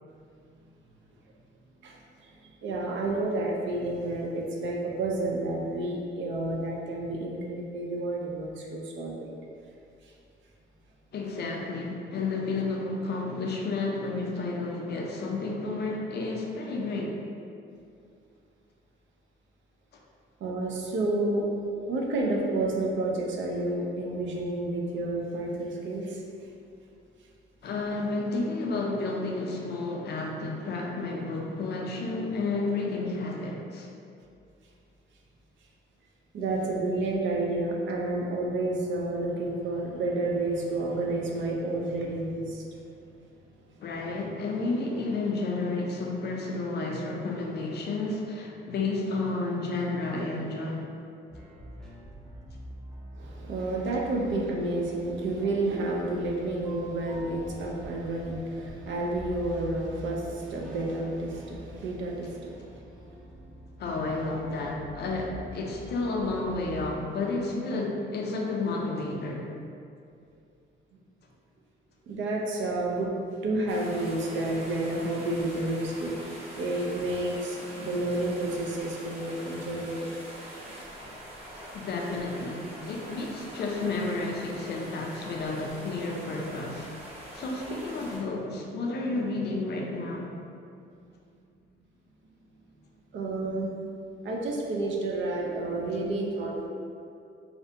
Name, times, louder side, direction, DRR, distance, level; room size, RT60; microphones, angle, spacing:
voice 1, 1.8-9.3 10.0-10.1 20.4-21.5 21.9-26.2 36.3-42.6 53.1-63.3 72.1-73.1 73.4-80.1 93.1-93.7 94.2-96.7, right 2 dB, 70° right, -1 dB, 0.5 m, -30 dB
voice 2, 11.1-17.2 27.6-33.9 43.8-50.9 63.8-69.4 81.7-86.9 87.3-90.3, left 3 dB, 55° left, 0 dB, 0.4 m, -31 dB
sound 1, 51.3-66.9, equal, ahead, 0.5 m, -46 dB
sound 2, 73.7-88.2, right 1 dB, 30° right, 0.8 m, -44 dB
2.5 x 2.1 x 2.6 m, 2.5 s
cardioid pair, 90°, 20 cm